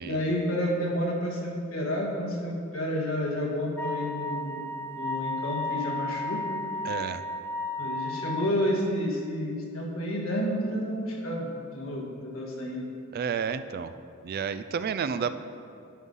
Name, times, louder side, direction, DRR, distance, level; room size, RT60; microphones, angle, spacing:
voice 1, 0.0-4.6 4.9-6.6 7.8-12.9, equal, 70° left, -2 dB, 1.7 m, -30 dB
Wind instrument woodwind instrument, 3.8-8.6, left 2 dB, 10° left, 0.5 m, -33 dB
voice 2, 6.8-7.2 13.1-13.9 14.2-15.4, right 6 dB, 45° right, 12 dB, 0.3 m, -31 dB
9.7 x 5.5 x 5.5 m, 2.5 s
head